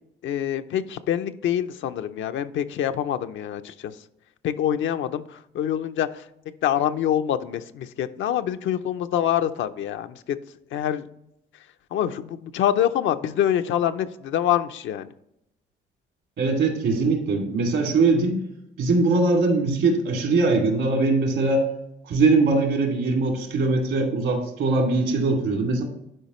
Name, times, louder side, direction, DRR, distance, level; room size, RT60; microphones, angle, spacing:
voice 1, 0.2-3.9 4.4-6.2 6.6-10.4 10.7-11.1 11.9-15.1, left 10 dB, 75° left, 9 dB, 0.6 m, -25 dB
voice 2, 16.4-18.4 18.8-21.7 22.0-25.8, right 3 dB, 75° right, 2 dB, 2.4 m, -21 dB
11.0 x 4.8 x 3.1 m, 0.80 s
cardioid pair, 90°, 20 cm